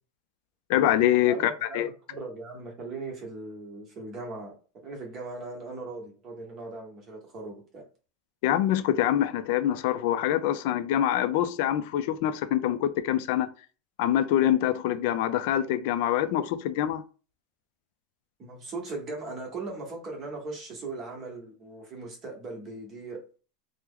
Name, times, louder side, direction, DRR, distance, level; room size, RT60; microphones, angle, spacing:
voice 1, 0.7-1.9 8.4-13.5 14.0-17.0, left 11 dB, 55° left, 0.4 m, -25 dB
voice 2, 1.2-7.8 18.4-23.2, right 3 dB, 25° right, 1.0 m, -39 dB
2.9 x 2.0 x 3.6 m
supercardioid pair, 165°, 0 cm